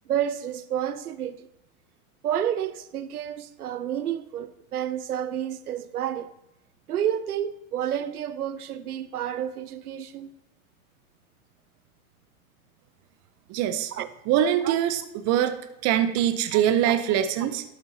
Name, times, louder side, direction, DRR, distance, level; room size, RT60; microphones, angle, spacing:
voice 1, 0.1-1.5 2.2-6.3 6.9-10.3 13.9-14.1 14.6-14.8 16.5-17.0, right 10 dB, 90° right, 0.7 m, -30 dB
voice 2, 13.5-13.9 14.3-15.6 15.8-17.6, right 10 dB, 35° right, 0.6 m, -23 dB
12.5 x 6.7 x 2.8 m
hypercardioid pair, 95°, 44 cm